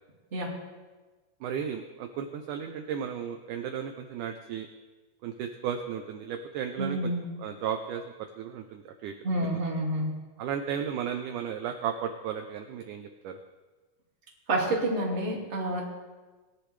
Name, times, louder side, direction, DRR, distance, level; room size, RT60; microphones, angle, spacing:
voice 1, 1.4-4.7 5.2-7.1 7.4-9.1 10.4-13.4, right 8 dB, 75° right, 6 dB, 1.9 m, -34 dB
voice 2, 6.8-7.3 9.2-10.1 14.5-15.8, right 1 dB, 25° right, -3 dB, 2.1 m, -28 dB
19.5 x 10.5 x 3.3 m, 1.3 s
omnidirectional pair, 4.1 m